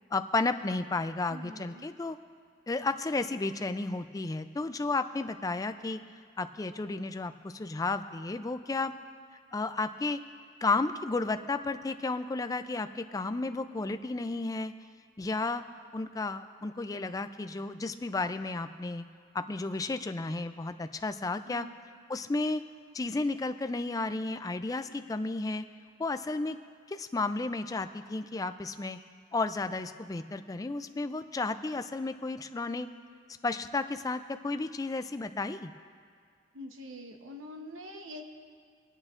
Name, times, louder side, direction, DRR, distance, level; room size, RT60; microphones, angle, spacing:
voice 1, 0.1-2.2 2.7-6.0 6.4-8.9 9.5-10.2 10.6-14.7 15.2-15.6 15.9-19.0 19.3-21.7 22.1-22.6 22.9-25.6 26.0-26.6 26.9-29.0 29.3-32.9 33.4-35.7, left 3 dB, 20° left, 10 dB, 0.3 m, -32 dB
voice 2, 1.3-1.9 21.5-21.8 36.5-38.2, equal, 85° right, 4 dB, 1.0 m, -45 dB
25.0 x 8.8 x 2.5 m, 2.1 s
head